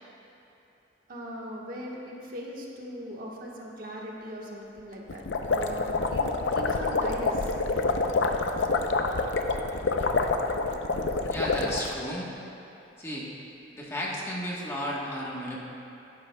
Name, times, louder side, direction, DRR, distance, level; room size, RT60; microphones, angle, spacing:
voice 1, 1.1-6.2 6.5-7.5, equal, 50° right, -3 dB, 1.3 m, -39 dB
sound 1, 5.1-11.9, left 3 dB, 75° left, 0.6 m, -27 dB
voice 2, 11.3-12.3 13.0-13.3 13.7-15.6, equal, 15° left, -5 dB, 1.1 m, -33 dB
15.5 x 10.5 x 2.2 m, 2.9 s
head